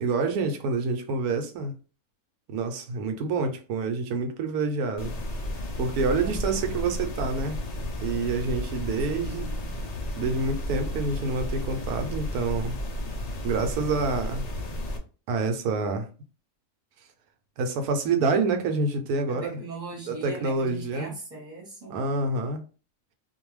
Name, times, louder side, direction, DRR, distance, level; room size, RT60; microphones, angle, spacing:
voice 1, 0.0-1.7 2.5-5.1 5.8-7.6 8.0-9.5 10.2-12.8 13.4-14.4 15.3-16.1 17.6-19.6 20.1-21.1 21.9-22.6, right 3 dB, 85° right, 1.1 m, -27 dB
sound 1, 5.0-15.0, equal, 80° left, 0.3 m, -33 dB
voice 2, 6.2-6.9 9.1-9.7 19.3-22.0, right 3 dB, 5° right, 1.0 m, -40 dB
2.6 x 2.2 x 3.1 m
omnidirectional pair, 1.5 m